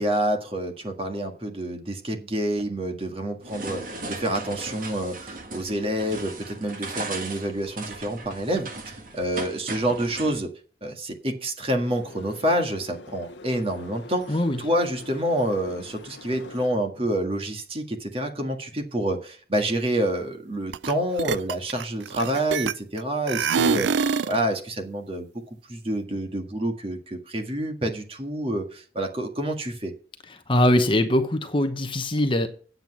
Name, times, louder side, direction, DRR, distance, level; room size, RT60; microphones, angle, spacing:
voice 1, 0.0-10.5 10.8-25.3 25.7-29.9, right 1 dB, 30° right, 1.8 m, -28 dB
sound 1, 3.4-10.4, right 3 dB, 50° right, 1.8 m, -37 dB
sound 2, 11.7-16.7, left 3 dB, 90° left, 1.0 m, -45 dB
voice 2, 14.3-14.6 30.5-32.5, left 1 dB, 30° left, 1.0 m, -22 dB
sound 3, 20.7-20.9 21.2-23.0 23.3-24.4, right 6 dB, 85° right, 0.4 m, -24 dB
8.9 x 8.0 x 5.9 m
head